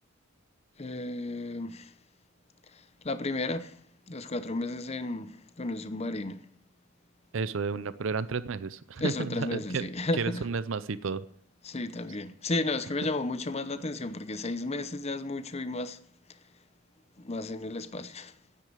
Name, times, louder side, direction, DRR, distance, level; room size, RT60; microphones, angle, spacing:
voice 1, 0.8-1.9 2.7-3.8 4.1-6.4 9.0-10.5 11.6-16.0 16.3-16.4 17.2-18.4, left 2 dB, 30° left, 0.8 m, -33 dB
voice 2, 7.3-9.8 10.2-11.2, right 4 dB, 65° right, 0.6 m, -32 dB
9.5 x 8.6 x 9.4 m
head